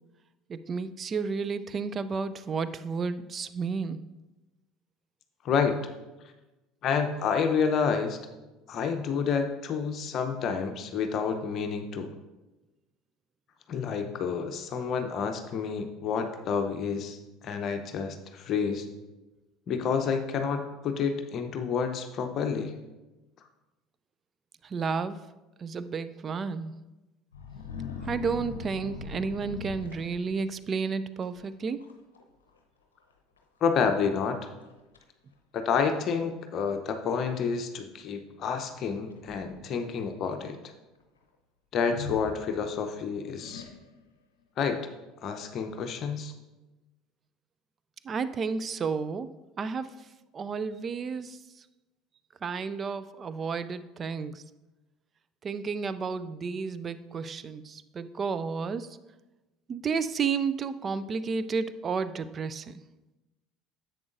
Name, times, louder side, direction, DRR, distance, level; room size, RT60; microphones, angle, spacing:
voice 1, 0.5-4.0 24.6-25.2 25.6-26.7 28.0-31.8 48.0-49.3 49.6-50.1 50.3-51.7 52.4-54.4 55.4-59.0 59.7-62.8, right 5 dB, 35° right, 14 dB, 0.4 m, -32 dB
voice 2, 5.4-5.8 6.8-8.2 8.7-12.1 13.7-17.2 17.4-18.9 19.7-22.7 33.6-34.4 35.5-40.6 41.7-43.6 44.6-44.8 45.2-46.3, left 6 dB, 45° left, 6 dB, 0.7 m, -29 dB
sound 1, 27.3-30.6 31.2-31.5 31.8-32.2 32.5-32.6 33.4-33.5 34.0-34.1 34.6-35.0 35.9-36.0 38.8-39.8 41.8-42.9 43.4-44.1, left 5 dB, 80° left, 0.7 m, -41 dB
10.5 x 7.8 x 2.6 m, 1.1 s
figure-of-eight pair, 65°, 0 cm